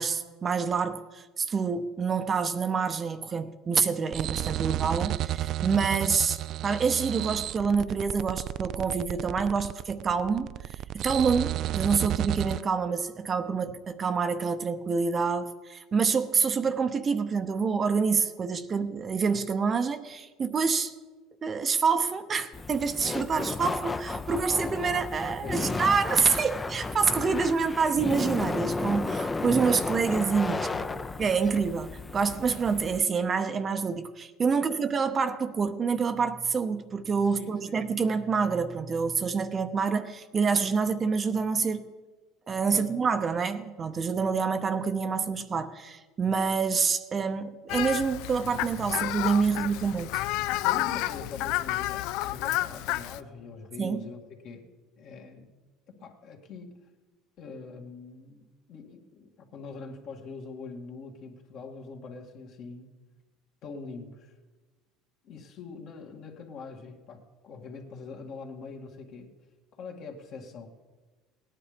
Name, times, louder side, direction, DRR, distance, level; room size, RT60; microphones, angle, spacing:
voice 1, 0.0-10.5 10.9-20.9 21.4-30.6 31.2-41.9 42.5-50.2 53.8-54.1, right 5 dB, 30° right, 9 dB, 0.7 m, -27 dB
sound 1, 4.1-12.6, right 13 dB, 55° right, 0.3 m, -32 dB
Laughter, 22.5-33.0, left 3 dB, 15° left, 0.6 m, -33 dB
voice 2, 25.4-25.8 30.5-31.0 31.4-31.5 34.5-34.7 37.2-37.8 42.7-43.0 49.5-49.9 50.6-54.2 54.4-54.6 55.0-55.5 55.9-56.8 57.4-62.9 63.6-64.3 65.2-69.3 69.7-70.7, left 4 dB, 55° left, 2 dB, 2.1 m, -43 dB
Fowl, 47.7-53.2, left 16 dB, 70° left, 0.4 m, -30 dB
17.5 x 9.9 x 5.1 m, 1.3 s
supercardioid pair, 105°, 0 cm